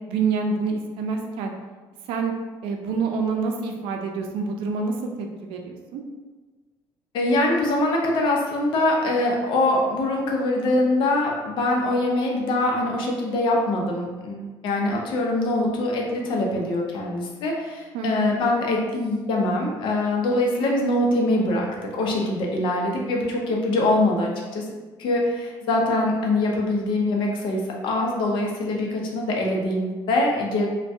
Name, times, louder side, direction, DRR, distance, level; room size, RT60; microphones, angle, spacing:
voice 1, 0.1-1.5 2.1-2.3 2.6-5.1 5.4-6.0 17.9-18.3, right 4 dB, 75° right, 3 dB, 0.5 m, -27 dB
voice 2, 7.1-21.7 21.9-24.6 25.0-30.7, left 2 dB, 65° left, -1 dB, 0.7 m, -23 dB
2.6 x 2.2 x 3.4 m, 1.3 s
cardioid pair, 120°, 9 cm